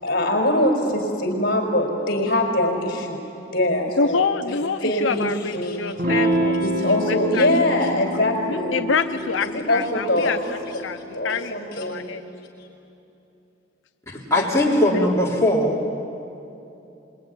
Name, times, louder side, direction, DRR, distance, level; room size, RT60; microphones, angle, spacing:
voice 1, 0.0-3.2 3.5-4.5 4.8-5.8 6.6-10.3 10.7-10.8 11.1-12.1, left 1 dB, 55° left, 2 dB, 5.2 m, -23 dB
voice 2, 4.0-6.6 6.9-7.5 7.9-8.0 8.5-11.0 11.2-12.2 14.4-15.1, left 5 dB, 90° left, 8 dB, 0.7 m, -27 dB
Electric guitar / Strum, 6.0-11.1, equal, 55° right, 3.7 m, -27 dB
voice 3, 14.1-15.8, left 1 dB, 15° left, -5 dB, 4.0 m, -20 dB
26.5 x 22.0 x 9.8 m, 2.9 s
head